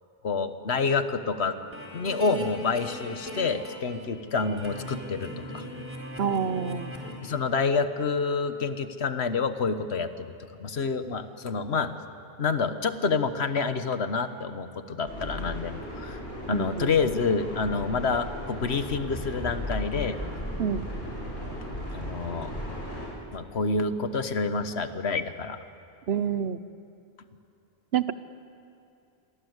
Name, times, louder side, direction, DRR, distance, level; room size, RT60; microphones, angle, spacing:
voice 1, 0.2-1.6 1.9-5.6 7.2-10.3 10.6-12.0 12.4-16.2 16.5-20.2 21.9-22.5 23.3-25.6, left 4 dB, 90° left, 10 dB, 1.5 m, -28 dB
sound 1, 1.3-4.0 4.4-7.1, equal, 10° right, 4.3 m, -39 dB
voice 2, 6.2-6.9 16.5-16.9 20.6-20.8 26.1-26.6 27.9-28.1, right 7 dB, 80° right, 14 dB, 1.1 m, -27 dB
sound 2, 15.0-23.1, equal, 55° left, 8.1 m, -36 dB
29.5 x 23.0 x 8.1 m, 2.6 s
omnidirectional pair, 1.1 m